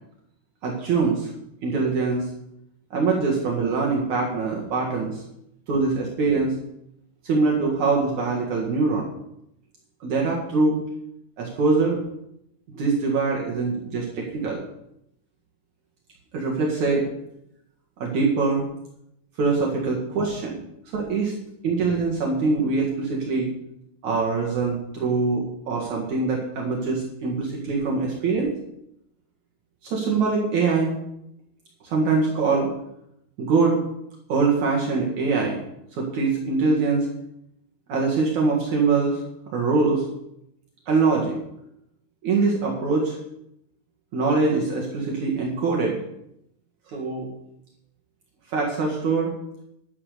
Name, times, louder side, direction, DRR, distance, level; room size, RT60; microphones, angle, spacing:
voice 1, 0.6-1.3 1.6-2.3 2.9-5.2 5.7-6.5 7.2-9.1 10.0-10.8 11.4-12.0 12.7-14.6 16.3-17.1 18.0-18.6 19.4-20.6 20.9-21.3 21.6-23.5 24.0-28.5 29.8-30.9 31.8-32.7 33.4-33.8 34.3-35.6 35.9-37.1 37.9-39.2 39.5-40.0 40.9-41.4 42.2-43.2 44.1-46.0 46.9-47.3 48.5-49.3, right 4 dB, 55° right, -2 dB, 3.0 m, -23 dB
11.0 x 10.0 x 6.7 m, 0.80 s
omnidirectional pair, 4.3 m